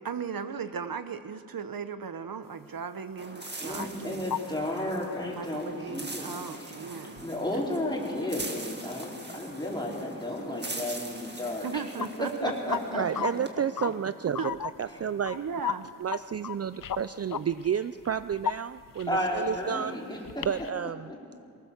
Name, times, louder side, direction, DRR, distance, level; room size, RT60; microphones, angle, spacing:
voice 1, 0.0-4.2 5.2-7.2 11.6-12.8 13.2-13.3 14.4-14.6 15.3-15.9, right 6 dB, 80° right, 11 dB, 0.9 m, -37 dB
sound 1, 3.2-13.5, right 2 dB, 30° right, 2.0 m, -42 dB
sound 2, 3.4-4.0 4.3-4.5 5.1-5.2 5.4-5.5 7.2-7.3 8.1-8.2 8.4-8.6 9.0-9.3 10.0-10.1 10.4-10.5 11.6-12.1 12.7-12.8 13.2-13.3 13.8-13.9 14.3-16.2 16.4-19.7 20.2-20.7, left 9 dB, 70° left, 0.5 m, -35 dB
voice 2, 3.6-6.8 7.2-11.7 12.2-13.3 15.0-15.1 19.1-20.5 21.1-21.2, left 1 dB, 15° left, -4 dB, 4.7 m, -33 dB
voice 3, 13.0-15.4 16.0-20.0 20.4-21.1, right 8 dB, 45° right, 13 dB, 0.4 m, -31 dB
23.5 x 18.0 x 7.2 m, 2.3 s
wide cardioid pair, 95°, 34 cm